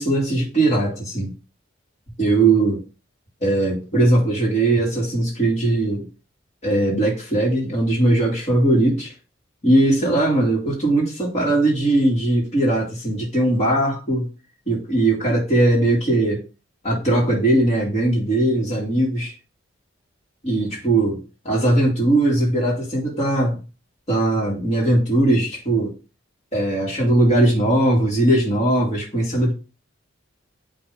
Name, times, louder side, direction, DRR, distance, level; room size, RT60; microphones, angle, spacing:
voice 1, 0.0-1.3 2.2-2.8 3.4-6.1 6.6-9.1 9.6-14.3 14.7-16.4 16.8-19.3 20.4-23.6 24.1-25.9 26.5-29.5, right 1 dB, 35° left, 2.5 m, -19 dB
8.8 x 3.5 x 3.7 m
head